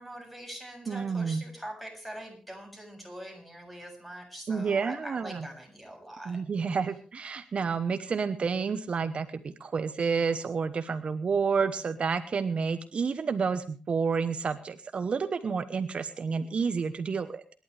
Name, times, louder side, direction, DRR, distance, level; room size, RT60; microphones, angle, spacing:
voice 1, 0.0-6.4, right 1 dB, ahead, 2 dB, 7.2 m, -43 dB
voice 2, 0.9-1.4 4.5-5.5 6.3-17.4, right 5 dB, 55° right, 10 dB, 1.0 m, -30 dB
27.5 x 11.5 x 3.4 m, 0.38 s
wide cardioid pair, 125°, 2 cm